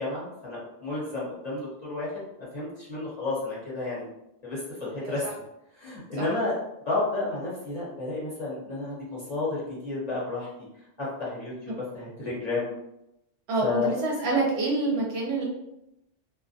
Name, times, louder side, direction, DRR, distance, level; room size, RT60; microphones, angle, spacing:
voice 1, 0.0-2.2 2.5-4.1 4.4-5.3 5.8-6.6 6.9-10.5 11.0-12.7 13.6-13.9, left 3 dB, 40° left, -8 dB, 0.8 m, -31 dB
voice 2, 13.5-15.4, right 3 dB, 65° right, -2 dB, 0.8 m, -26 dB
2.2 x 2.1 x 2.6 m, 0.86 s
omnidirectional pair, 1.2 m